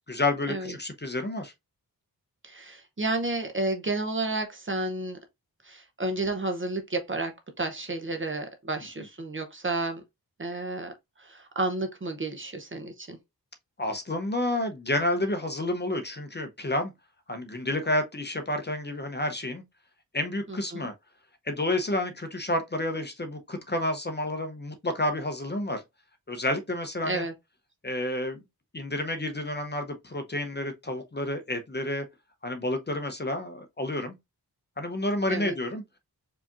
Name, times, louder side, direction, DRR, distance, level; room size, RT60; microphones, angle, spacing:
voice 1, 0.1-1.5 13.8-16.9 17.3-19.6 20.1-20.9 21.5-25.8 26.3-27.2 27.8-28.4 28.7-32.0 32.4-34.1 34.8-35.8, left 1 dB, 30° left, 0.7 m, -30 dB
voice 2, 2.4-5.2 5.6-10.0 10.4-10.9 11.2-13.2 20.5-20.9 27.0-27.3 35.3-35.6, right 2 dB, 30° right, 0.7 m, -31 dB
4.8 x 2.8 x 2.4 m
wide cardioid pair, 110°, 38 cm